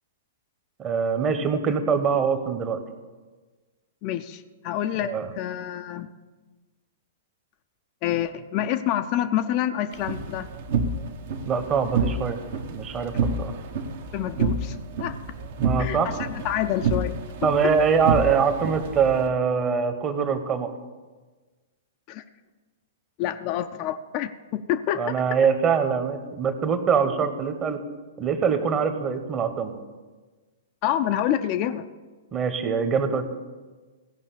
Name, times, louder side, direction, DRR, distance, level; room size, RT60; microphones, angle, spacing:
voice 1, 0.8-2.8 5.0-5.3 11.5-12.4 12.7-13.5 15.6-16.1 17.4-20.7 25.0-27.8 28.2-29.7 32.3-33.3, right 6 dB, 25° right, 9 dB, 1.0 m, -23 dB
voice 2, 4.0-6.1 8.0-10.5 14.1-15.1 15.8-16.2 16.4-17.2 22.1-22.2 23.2-25.4 30.8-31.9, left 11 dB, 40° left, 8 dB, 0.5 m, -27 dB
sound 1, 9.9-19.3, right 4 dB, 50° right, 0.9 m, -29 dB
16.0 x 5.5 x 6.9 m, 1.3 s
figure-of-eight pair, 105°, 0 cm